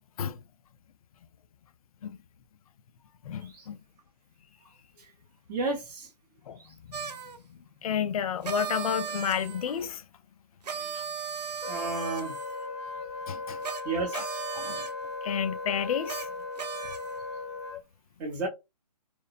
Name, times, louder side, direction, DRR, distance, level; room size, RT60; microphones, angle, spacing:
voice 1, 3.2-3.8 6.5-6.6 7.5-10.0 10.9-11.0 13.3-13.6 14.1-14.3 14.5-14.9 15.2-16.3, left 8 dB, 60° left, 0.4 m, -31 dB
voice 2, 5.5-6.1 6.6-6.7 11.7-12.4 13.8-14.6 18.2-18.5, right 3 dB, 20° right, 0.6 m, -33 dB
sound 1, 6.9-7.4 8.4-9.9 10.6-12.7 13.6-13.8 14.1-14.9 16.1-16.3 16.6-17.2, right 7 dB, 85° right, 0.6 m, -37 dB
Wind instrument woodwind instrument, 11.6-17.8, left 3 dB, 40° left, 1.0 m, -37 dB
2.9 x 2.0 x 2.3 m
hypercardioid pair, 150°, 21 cm